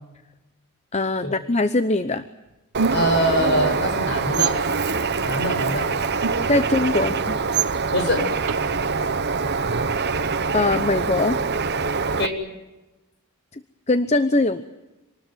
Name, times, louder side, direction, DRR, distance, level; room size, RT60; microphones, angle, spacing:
voice 1, 0.9-2.3 6.5-7.4 10.5-11.4 13.9-14.6, left 2 dB, 30° left, 11 dB, 0.8 m, -21 dB
Bird, 2.7-12.3, right 4 dB, 50° right, 1.0 m, -24 dB
sound 1, 2.8-3.2 4.3-4.6 6.2-6.6 7.5-7.7 8.5-8.6, right 8 dB, 80° right, 1.0 m, -24 dB
voice 2, 2.9-4.6 5.2-5.9 7.0-7.1 7.9-8.3 12.2-12.4, equal, 50° left, 4 dB, 7.6 m, -23 dB
26.5 x 20.0 x 9.3 m, 1.1 s
head